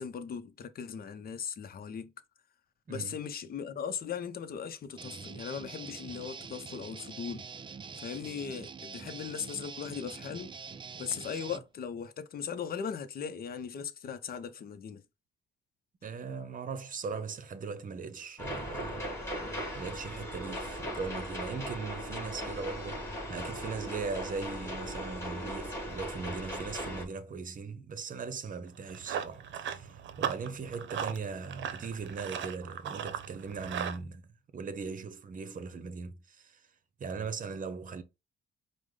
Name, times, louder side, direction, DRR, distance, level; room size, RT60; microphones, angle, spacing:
voice 1, 0.0-2.1 2.9-7.5 7.9-10.6 11.0-15.0, left 7 dB, 50° left, 0.7 m, -38 dB
voice 2, 2.9-3.2 16.0-19.1 19.8-36.7 37.0-38.0, right 5 dB, 45° right, 0.8 m, -39 dB
Guitar, 5.0-11.7, right 5 dB, 25° right, 0.4 m, -45 dB
sound 1, 18.4-27.1, equal, 15° left, 2.1 m, -38 dB
Run, 28.7-34.0, right 9 dB, 70° right, 0.7 m, -38 dB
4.9 x 2.2 x 3.7 m
cardioid pair, 90°, 20 cm